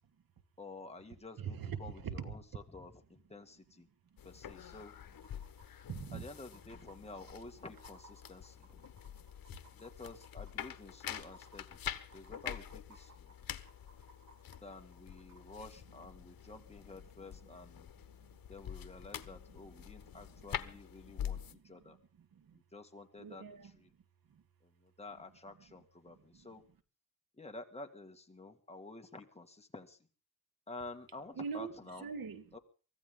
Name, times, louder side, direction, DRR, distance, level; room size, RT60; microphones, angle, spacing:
voice 1, 0.6-3.9 4.2-4.9 6.1-8.8 9.7-11.8 12.1-13.4 14.6-17.9 18.5-22.0 22.5-23.9 24.6-26.6 27.4-30.0 30.7-32.1 32.5-32.6, left 2 dB, 20° left, 2.0 m, -50 dB
voice 2, 1.4-2.3 4.1-4.2 5.9-6.2 9.0-9.1 16.2-16.3 17.4-17.5 18.1-18.4 19.5-20.5 21.0-22.6 23.2-23.8 24.3-24.4 26.1-26.5 31.3-31.7 32.0-32.4, right 6 dB, 80° right, 1.8 m, -45 dB
sound 1, 4.1-4.2 4.4-4.5 5.1-15.4 17.1-17.2, right 1 dB, 55° right, 3.2 m, -61 dB
sound 2, 4.2-21.5, left 9 dB, 75° left, 1.2 m, -46 dB
24.0 x 15.0 x 3.8 m
wide cardioid pair, 115°, 35 cm